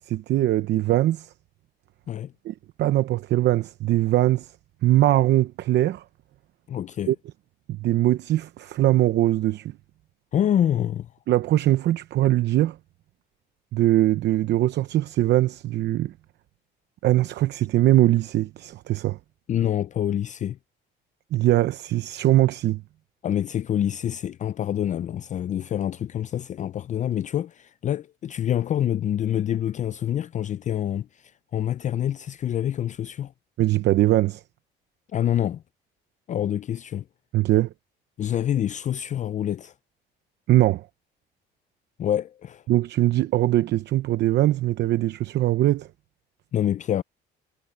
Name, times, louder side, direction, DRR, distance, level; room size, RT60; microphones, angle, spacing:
voice 1, 0.1-1.3 2.4-4.5 4.8-6.0 7.1-7.2 7.7-9.7 11.3-12.8 13.7-16.1 17.0-19.2 21.3-22.8 33.6-34.4 37.3-37.7 40.5-40.9 42.7-45.9, right 14 dB, 70° right, 0.8 m, -21 dB
voice 2, 6.7-7.1 10.3-11.1 19.5-20.6 23.2-33.3 35.1-35.6 36.3-37.0 38.2-39.7 42.0-42.6 46.5-47.0, left 10 dB, 40° left, 0.4 m, -26 dB
cardioid pair, 120°, 19 cm